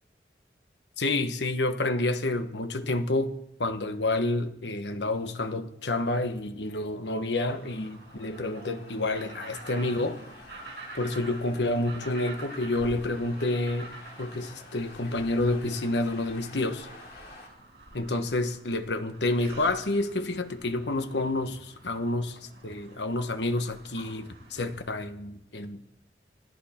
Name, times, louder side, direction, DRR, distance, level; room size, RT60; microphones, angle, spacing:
voice 1, 1.0-10.2 10.9-13.9 14.2-16.9 17.9-25.9, left 2 dB, 85° left, 1.2 m, -29 dB
sound 1, 6.8-17.5, left 2 dB, 60° left, 4.0 m, -50 dB
sound 2, 7.2-25.0, right 2 dB, 75° right, 5.9 m, -48 dB
26.0 x 11.0 x 4.4 m
head